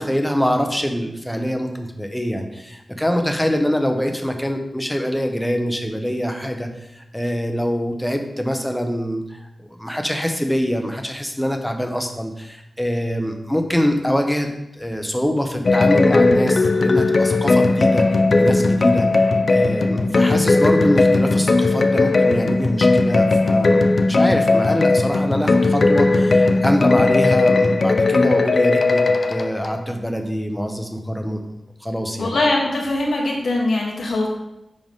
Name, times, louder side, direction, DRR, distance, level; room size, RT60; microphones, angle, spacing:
voice 1, 0.0-18.1 18.4-31.4 31.8-32.4, equal, 5° left, 4 dB, 0.8 m, -24 dB
sound 1, 15.6-29.7, left 3 dB, 50° left, 0.5 m, -17 dB
voice 2, 17.9-18.3 32.2-34.3, left 2 dB, 90° left, -1 dB, 1.5 m, -22 dB
10.5 x 3.9 x 3.6 m, 0.88 s
wide cardioid pair, 100°, 0 cm